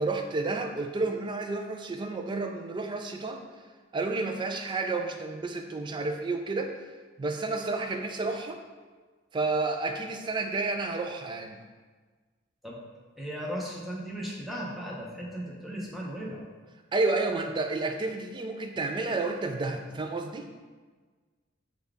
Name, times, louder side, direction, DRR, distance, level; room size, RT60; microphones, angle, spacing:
voice 1, 0.0-3.4 3.9-6.7 7.2-8.6 9.3-11.6 16.9-20.5, right 3 dB, 25° right, 5 dB, 0.3 m, -30 dB
voice 2, 13.2-16.4, equal, ahead, -4 dB, 0.7 m, -36 dB
5.4 x 2.3 x 3.5 m, 1.4 s
head